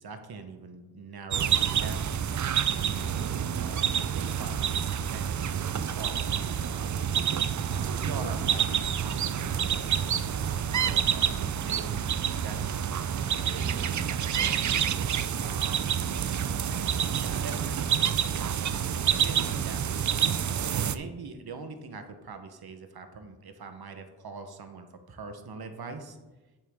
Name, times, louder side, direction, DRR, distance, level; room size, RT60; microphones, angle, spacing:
voice 1, 0.0-2.2 2.8-6.9 7.6-14.7 15.4-16.1 16.5-20.0 20.5-26.2, right 4 dB, 65° right, 7 dB, 1.0 m, -43 dB
sound 1, 1.3-21.0, right 8 dB, 50° right, 0.4 m, -28 dB
sound 2, 10.0-15.9, right 2 dB, 90° right, 1.9 m, -48 dB
7.9 x 7.2 x 3.6 m, 1.1 s
wide cardioid pair, 65°, 40 cm